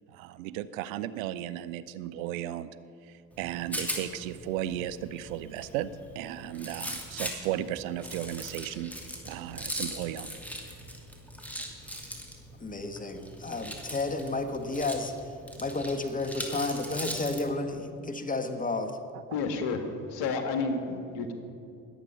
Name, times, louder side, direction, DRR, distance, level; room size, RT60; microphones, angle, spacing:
voice 1, 0.1-2.7 3.0-8.9 9.2-10.3 11.9-12.0 19.1-19.2, right 12 dB, 75° right, 14 dB, 0.7 m, -35 dB
Rattle, 3.3-17.5, equal, 5° left, 2.8 m, -40 dB
voice 2, 12.6-15.1 15.6-19.0, left 3 dB, 20° left, 8 dB, 1.6 m, -32 dB
voice 3, 19.3-21.3, left 4 dB, 65° left, 6 dB, 1.9 m, -31 dB
21.5 x 8.3 x 5.8 m, 2.6 s
hypercardioid pair, 60°, 41 cm